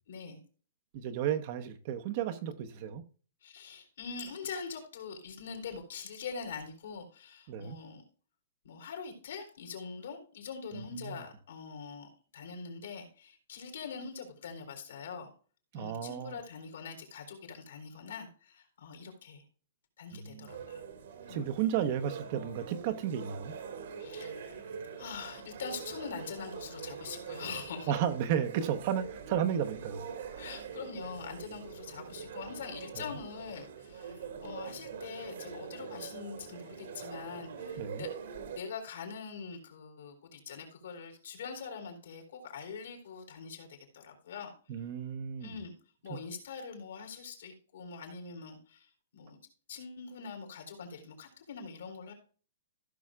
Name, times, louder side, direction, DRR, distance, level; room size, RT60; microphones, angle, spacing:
voice 1, 0.1-0.4 3.4-8.0 8.6-15.3 15.7-19.4 20.0-20.8 21.3-21.4 24.0-24.6 25.0-27.9 30.4-38.1 38.5-44.5 45.4-45.7 46.0-48.9 49.1-49.4 49.7-52.1, left 5 dB, 70° left, 3.4 m, -43 dB
voice 2, 0.9-3.0 7.5-7.8 10.7-11.2 15.7-16.3 20.1-20.5 21.3-23.5 27.9-30.1 32.9-33.1 37.8-38.0 44.7-45.5 46.1-46.2, right 9 dB, 35° right, 0.9 m, -33 dB
sound 1, 20.5-38.6, right 6 dB, 65° right, 1.8 m, -44 dB
15.0 x 6.2 x 2.3 m
hypercardioid pair, 165°, 0 cm